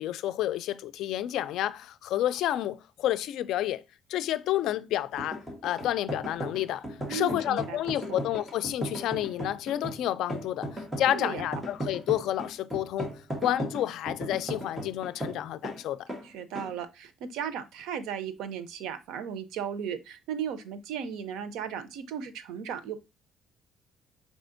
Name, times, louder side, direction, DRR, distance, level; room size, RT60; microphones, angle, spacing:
voice 1, 0.0-3.8 4.1-13.1 13.4-16.1, left 12 dB, 75° left, 0.3 m, -30 dB
sound 1, 5.1-15.8 16.1-16.3 16.6-16.8, equal, 10° right, 1.2 m, -36 dB
voice 2, 7.1-8.2 11.1-11.4 16.2-23.0, right 8 dB, 90° right, 0.6 m, -36 dB
4.8 x 4.2 x 2.6 m
cardioid pair, 140°, 0 cm